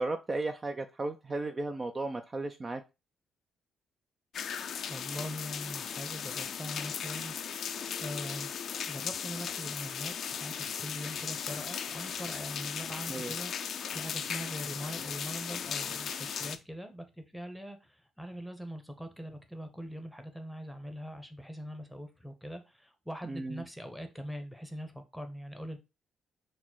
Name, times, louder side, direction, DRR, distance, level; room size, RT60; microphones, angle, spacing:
voice 1, 0.0-2.8 13.1-13.3 23.2-23.6, right 2 dB, 30° right, 0.4 m, -35 dB
sound 1, 4.3-16.6, left 7 dB, 60° left, 0.4 m, -37 dB
voice 2, 4.9-7.3 8.0-8.5 8.8-13.5 13.9-25.8, equal, ahead, 0.8 m, -42 dB
4.2 x 2.1 x 4.4 m
cardioid pair, 90°, 0 cm